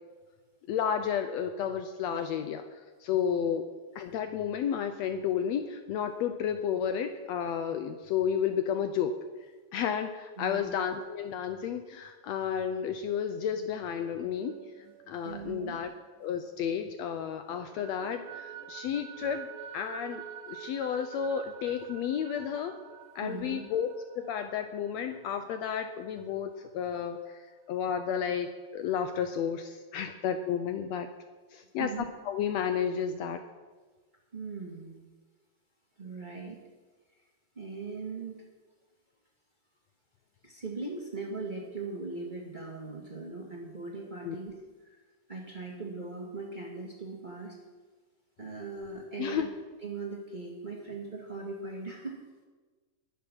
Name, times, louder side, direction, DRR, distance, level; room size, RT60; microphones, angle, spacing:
voice 1, 0.7-3.7 3.9-9.1 9.7-15.9 16.2-19.5 19.7-22.8 23.1-31.1 31.5-31.9 32.2-33.4 44.2-44.4 49.2-49.5, left 8 dB, 80° left, 8 dB, 1.5 m, -32 dB
voice 2, 10.4-10.7 15.2-15.8 23.2-23.6 31.8-32.0 34.3-35.0 36.0-36.6 37.5-38.4 40.4-44.5 45.3-47.6 48.4-49.4 49.8-52.1, right 3 dB, 20° right, -1 dB, 1.4 m, -39 dB
sound 1, 14.0-16.9 17.2-26.6, right 9 dB, 75° right, 2.1 m, -48 dB
20.0 x 7.1 x 6.1 m, 1.4 s
omnidirectional pair, 3.8 m